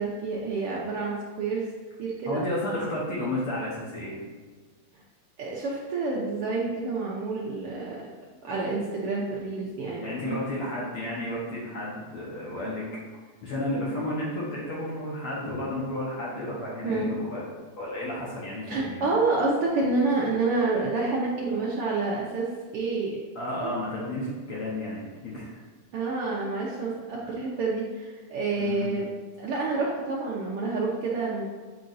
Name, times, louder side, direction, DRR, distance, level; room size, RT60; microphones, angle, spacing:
voice 1, 0.0-1.7 2.0-2.4 4.9-5.0 5.4-8.0 8.4-10.4 16.8-17.1 18.7-22.5 22.7-23.2 23.6-23.7 25.9-29.1 29.4-31.5, right 3 dB, 90° right, -4 dB, 1.2 m, -28 dB
voice 2, 2.3-4.2 10.0-12.8 13.4-17.4 17.8-19.0 23.3-25.6 27.2-27.3 28.6-29.0, left 1 dB, 60° left, -6 dB, 1.6 m, -32 dB
7.9 x 4.6 x 2.6 m, 1.4 s
omnidirectional pair, 3.4 m